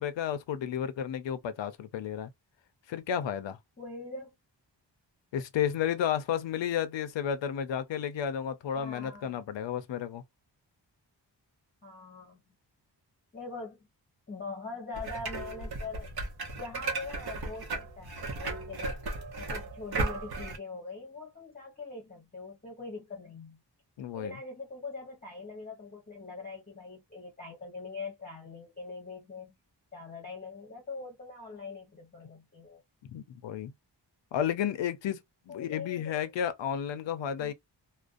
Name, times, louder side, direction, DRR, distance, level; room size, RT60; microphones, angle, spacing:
voice 1, 0.0-2.3 2.9-3.6 5.3-10.2 24.0-24.4 33.1-33.7 34.3-35.2 35.5-37.5, left 9 dB, 80° left, 0.5 m, -32 dB
voice 2, 3.8-4.3 8.8-9.4 11.8-12.4 13.3-13.8 14.3-16.1 16.5-19.0 19.4-23.6 24.1-29.6 29.9-32.8 35.5-36.3 37.4-37.5, left 3 dB, 20° left, 0.9 m, -42 dB
sound 1, 14.9-20.6, right 3 dB, 60° right, 0.7 m, -35 dB
2.4 x 2.1 x 2.4 m
wide cardioid pair, 155°, 44 cm